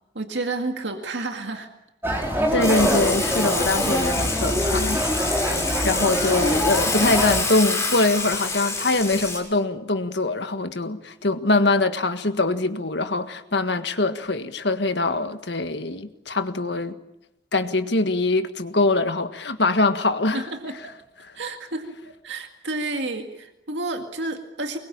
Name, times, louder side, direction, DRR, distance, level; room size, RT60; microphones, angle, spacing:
voice 1, 0.1-1.7 20.3-20.8 21.3-22.0 22.2-24.8, right 2 dB, 75° right, 2.1 m, -30 dB
sound 1, 2.0-7.4, equal, 10° right, 4.4 m, -24 dB
voice 2, 2.5-5.0 5.3-17.0 17.5-20.4, left 2 dB, 70° left, 1.7 m, -23 dB
Water / Water tap faucet / Sink (filling or washing), 2.6-9.4, left 3 dB, 15° left, 6.0 m, -27 dB
25.0 x 22.0 x 8.8 m
head